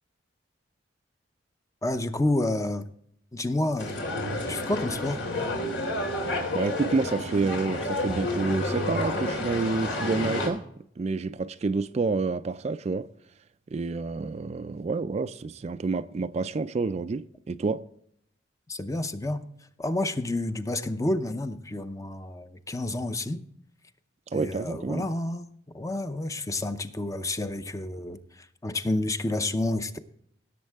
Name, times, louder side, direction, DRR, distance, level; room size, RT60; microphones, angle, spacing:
voice 1, 1.8-2.9 3.3-3.9 4.5-5.2 18.7-19.5 19.8-23.4 24.3-25.5 25.7-30.0, left 2 dB, 15° left, 0.6 m, -29 dB
sound 1, 3.8-10.5, left 1 dB, 80° left, 3.0 m, -30 dB
voice 2, 6.5-10.6 11.0-13.1 13.7-17.8 24.3-25.1, right 3 dB, 35° right, 0.3 m, -28 dB
17.0 x 7.4 x 3.5 m
head